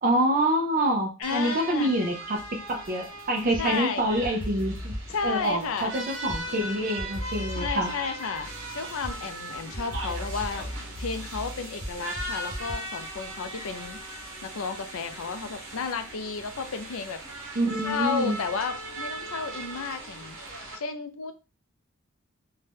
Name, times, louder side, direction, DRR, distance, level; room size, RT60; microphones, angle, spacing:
voice 1, 0.0-2.4 2.7-4.9 5.2-7.9 17.6-18.4, right 1 dB, 40° right, 2 dB, 0.5 m, -26 dB
voice 2, 1.2-2.0 3.6-4.1 5.1-5.9 7.5-8.5 8.7-10.7 11.0-14.0 14.4-17.2 17.8-20.4 20.7-21.3, left 5 dB, 85° left, 8 dB, 0.5 m, -32 dB
sound 1, 1.2-20.7, right 1 dB, 75° right, 0.9 m, -39 dB
sound 2, 2.4-3.9 4.2-6.6 7.0-12.7, equal, 25° left, 0.6 m, -37 dB
2.7 x 2.2 x 3.3 m, 0.31 s
head